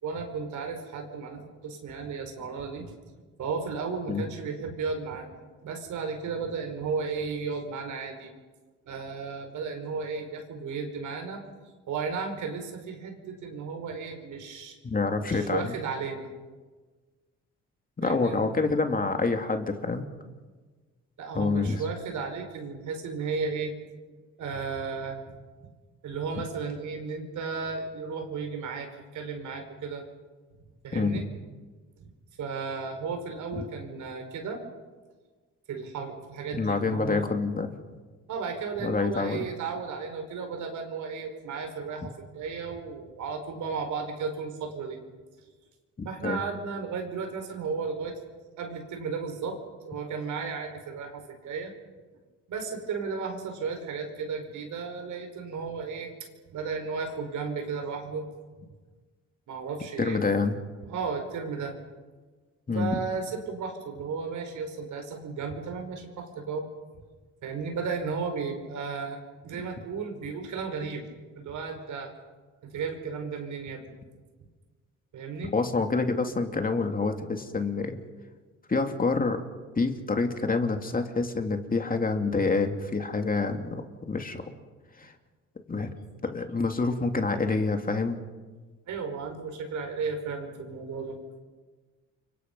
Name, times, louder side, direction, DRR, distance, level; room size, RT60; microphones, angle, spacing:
voice 1, 0.0-2.9 3.4-8.3 8.9-11.4 11.9-14.8 15.2-16.3 18.0-18.4 21.2-23.7 24.4-25.7 26.0-28.9 29.1-30.0 30.8-31.3 32.0-32.1 32.4-34.6 35.7-37.3 38.3-45.0 46.1-48.2 48.6-49.6 49.9-51.7 52.5-56.2 56.5-58.3 59.5-60.2 60.9-61.8 62.7-66.7 67.4-71.0 71.4-72.1 72.6-74.0 75.1-75.5 88.9-91.2, right 5 dB, 75° right, 4 dB, 5.2 m, -34 dB
voice 2, 14.8-15.8 18.0-20.1 21.3-21.8 30.9-31.2 33.6-33.7 36.6-37.8 38.8-39.5 46.2-46.4 60.0-60.5 62.7-63.0 75.5-78.0 78.7-79.4 79.8-84.4 85.0-85.1 85.7-85.9 86.2-88.2, left 3 dB, 30° left, 5 dB, 2.6 m, -27 dB
29.5 x 25.0 x 5.5 m, 1.3 s
cardioid pair, 90°, 30 cm